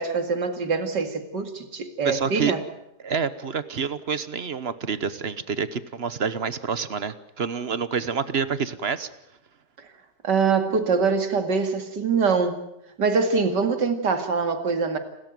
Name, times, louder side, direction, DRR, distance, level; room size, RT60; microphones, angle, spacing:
voice 1, 0.0-2.6 9.8-9.9 10.2-12.6 13.0-15.0, right 5 dB, 75° right, 8 dB, 2.8 m, -24 dB
voice 2, 2.0-2.5 3.0-9.1, right 6 dB, 40° right, 14 dB, 1.1 m, -28 dB
29.0 x 13.5 x 9.3 m, 0.82 s
omnidirectional pair, 1.9 m